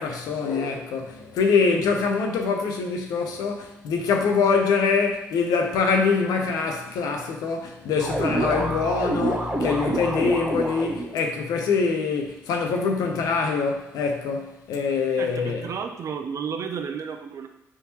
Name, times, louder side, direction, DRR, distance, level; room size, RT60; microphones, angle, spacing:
voice 1, 0.0-15.7, left 5 dB, 80° left, 0.5 m, -24 dB
sound 1, 8.0-11.1, right 1 dB, 20° right, 0.6 m, -27 dB
voice 2, 15.2-17.5, right 6 dB, 55° right, 0.4 m, -32 dB
3.5 x 2.8 x 2.8 m
supercardioid pair, 70°, 6 cm